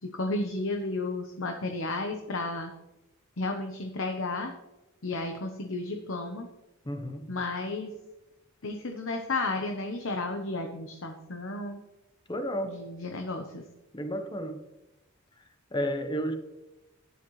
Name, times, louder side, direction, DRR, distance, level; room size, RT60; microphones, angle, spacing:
voice 1, 0.0-2.7 3.4-4.5 5.0-6.5 7.3-8.0 8.6-11.8 12.6-13.6, left 2 dB, 65° left, 1.0 m, -33 dB
voice 2, 6.8-7.3 12.3-12.8 13.9-14.6 15.7-16.3, equal, 20° left, 1.1 m, -32 dB
12.5 x 10.0 x 3.2 m
head